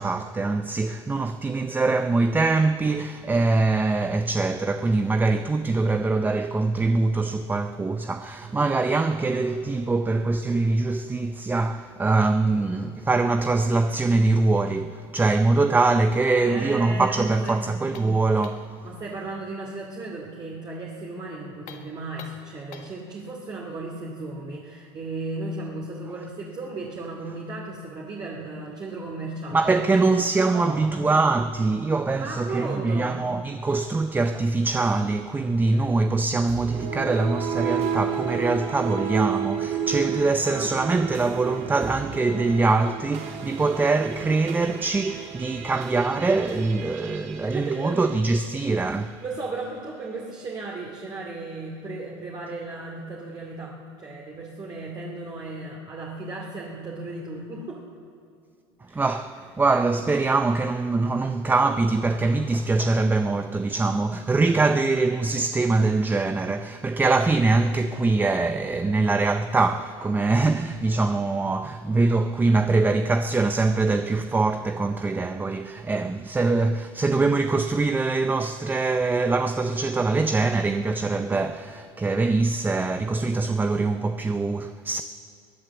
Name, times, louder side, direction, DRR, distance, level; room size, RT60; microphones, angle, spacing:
voice 1, 0.0-18.7 29.5-49.2 58.9-85.0, right 3 dB, 15° right, 0.5 m, -23 dB
voice 2, 16.4-17.6 18.8-29.8 30.4-31.0 32.1-33.2 40.1-40.9 47.4-48.0 49.2-57.8 58.9-59.0, right 3 dB, 30° right, 2.5 m, -35 dB
sound 1, 17.5-18.8 21.6-23.0, left 8 dB, 60° left, 1.6 m, -47 dB
sound 2, 36.5-48.8, right 7 dB, 55° right, 1.8 m, -32 dB
22.0 x 8.9 x 7.1 m
supercardioid pair, 100°, 14 cm